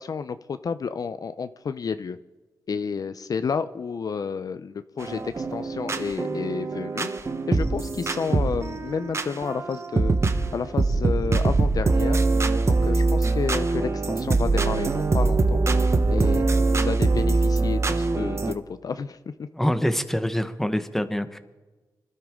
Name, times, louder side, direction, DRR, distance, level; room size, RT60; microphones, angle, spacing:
voice 1, 0.0-2.2 2.7-7.1 7.5-12.2 12.7-19.5, left 5 dB, 55° left, 12 dB, 0.6 m, -31 dB
sound 1, 5.0-18.5, right 3 dB, 40° right, 1.1 m, -23 dB
voice 2, 19.5-21.4, equal, 5° left, 9 dB, 1.2 m, -25 dB
25.5 x 12.5 x 3.7 m, 1.2 s
cardioid pair, 80°, 7 cm